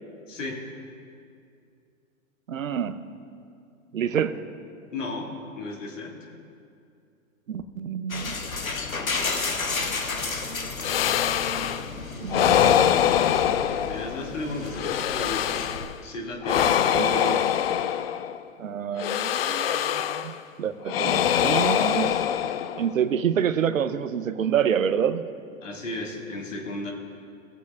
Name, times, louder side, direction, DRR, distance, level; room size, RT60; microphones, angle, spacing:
voice 1, 0.3-0.6 4.9-6.4 13.9-15.7 16.0-16.8 25.6-26.9, left 2 dB, 65° left, 0 dB, 1.9 m, -34 dB
voice 2, 2.5-3.1 3.9-4.4 7.5-8.3 12.1-13.1 16.6-17.5 18.6-20.3 20.6-22.1 22.7-25.2, right 8 dB, 70° right, 11 dB, 0.8 m, -27 dB
sound 1, 8.1-15.9, left 3 dB, 85° left, 1.0 m, -32 dB
sound 2, 10.8-11.9 12.3-14.3 14.7-16.0 16.4-18.4 19.0-20.4 20.9-23.0, left 10 dB, 50° left, 0.4 m, -24 dB
20.5 x 8.1 x 2.3 m, 2.4 s
figure-of-eight pair, 105°, 41 cm